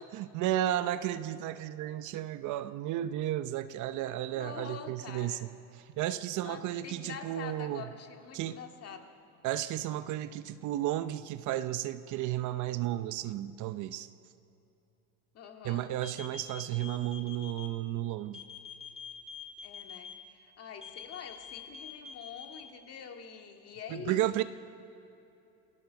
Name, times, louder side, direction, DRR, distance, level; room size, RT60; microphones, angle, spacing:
voice 1, 0.1-7.8 8.3-8.6 9.4-14.1 15.6-18.4 23.9-24.4, right 13 dB, 50° right, 12 dB, 0.7 m, -33 dB
voice 2, 4.4-5.4 6.4-9.1 15.3-15.9 19.6-24.2, left 7 dB, 40° left, 4 dB, 2.1 m, -45 dB
sound 1, 16.0-17.7 18.3-20.1 20.8-22.6, left 6 dB, 15° left, 3.7 m, -45 dB
27.5 x 16.5 x 7.1 m, 2.9 s
cardioid pair, 135°, 39 cm